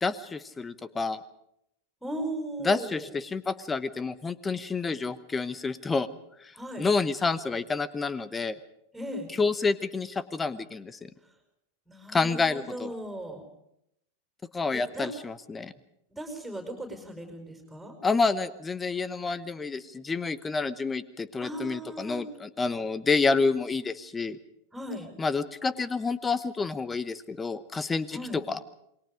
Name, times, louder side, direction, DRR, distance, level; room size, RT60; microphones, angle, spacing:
voice 1, 0.0-1.2 2.6-6.1 6.4-6.5 6.8-8.6 9.4-11.1 12.1-12.9 14.5-15.7 18.0-24.4 25.2-28.2 28.5-28.6, left 4 dB, 15° left, 17 dB, 1.1 m, -29 dB
voice 2, 2.0-3.1 6.5-6.9 8.9-9.3 11.2-11.3 11.9-13.5 14.7-15.1 16.1-18.0 21.4-22.3 24.7-25.1 28.1-28.4, right 1 dB, ahead, 4 dB, 4.9 m, -37 dB
28.0 x 21.5 x 5.1 m, 0.77 s
figure-of-eight pair, 90°, 0 cm